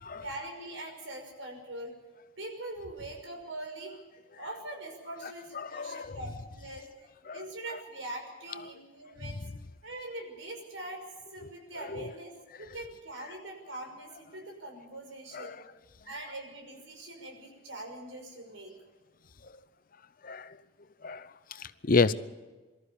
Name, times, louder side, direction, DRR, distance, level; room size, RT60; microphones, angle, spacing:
voice 1, 0.2-1.9 2.4-4.0 4.4-6.9 7.3-9.4 9.8-11.0 11.3-12.3 12.6-15.6 16.1-18.7, right 1 dB, 85° right, 3 dB, 5.9 m, -42 dB
voice 2, 5.5-6.2 7.3-7.4 9.2-9.3 11.4-11.5 15.3-15.6 20.2-20.6 21.0-22.1, left 4 dB, 45° left, 15 dB, 0.7 m, -30 dB
24.0 x 14.0 x 8.5 m, 1.3 s
head